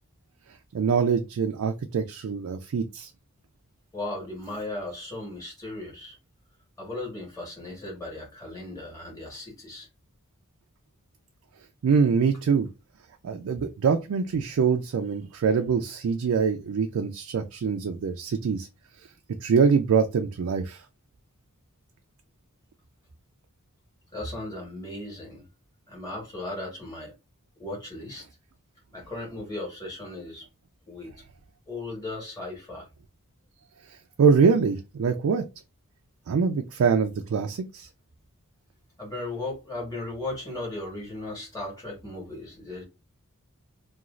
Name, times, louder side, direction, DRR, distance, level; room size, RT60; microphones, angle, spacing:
voice 1, 0.7-3.1 11.8-12.7 13.2-18.7 19.4-20.8 34.2-35.4 36.3-37.9, right 5 dB, 70° right, 0.3 m, -24 dB
voice 2, 3.9-6.1 6.8-9.9 24.1-25.4 25.9-27.1 27.6-28.3 28.9-30.4 30.9-31.1 31.7-32.9 39.0-42.8, left 2 dB, 15° left, 1.5 m, -36 dB
2.9 x 2.4 x 2.4 m
head